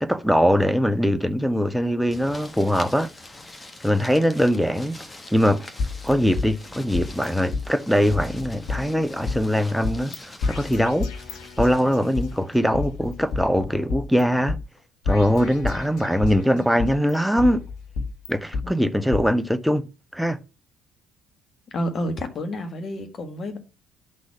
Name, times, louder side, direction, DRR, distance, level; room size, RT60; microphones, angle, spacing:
voice 1, 0.0-3.1 3.8-5.0 5.3-5.6 6.0-11.1 11.6-14.6 15.1-17.7 18.3-19.9 20.1-20.4, equal, ahead, 0.8 m, -22 dB
sound 1, 2.1-13.8, left 2 dB, 25° left, 1.5 m, -44 dB
sound 2, 5.8-7.3 7.5-7.6 8.1-9.4 9.8-10.2 10.4-12.3 12.7-14.2 14.5-14.6 15.0-16.4 16.8-18.6 19.1-19.2, left 4 dB, 65° left, 1.3 m, -30 dB
voice 2, 18.6-18.9 21.7-23.6, left 1 dB, 45° left, 1.8 m, -30 dB
11.0 x 4.3 x 4.7 m
figure-of-eight pair, 50°, 0 cm